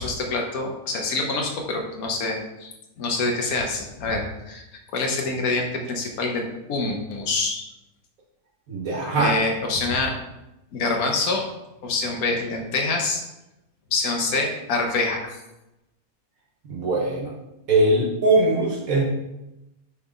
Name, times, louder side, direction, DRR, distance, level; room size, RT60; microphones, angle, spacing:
voice 1, 0.0-2.7 3.0-4.6 4.9-7.7 9.2-10.1 10.7-11.4 11.8-13.2 13.9-15.4, left 3 dB, 75° left, 2 dB, 1.4 m, -26 dB
voice 2, 8.7-9.4 16.7-17.3 17.7-19.0, right 2 dB, 70° right, -3 dB, 1.5 m, -21 dB
5.9 x 4.1 x 5.0 m, 0.93 s
omnidirectional pair, 1.6 m